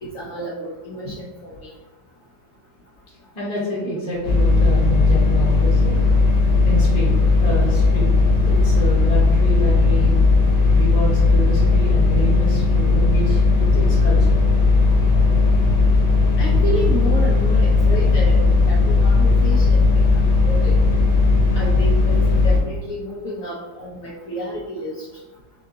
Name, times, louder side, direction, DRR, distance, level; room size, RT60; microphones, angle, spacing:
voice 1, 0.0-1.7 16.4-20.1 20.4-20.8 21.5-25.1, equal, 85° left, -4 dB, 0.7 m, -30 dB
voice 2, 3.3-6.0 6.6-8.1 8.5-10.2 10.7-14.4, right 1 dB, 30° left, -6 dB, 0.6 m, -28 dB
sound 1, 4.2-22.6, left 3 dB, 65° left, 1.4 m, -16 dB
6.5 x 2.4 x 2.6 m, 1.1 s
omnidirectional pair, 2.1 m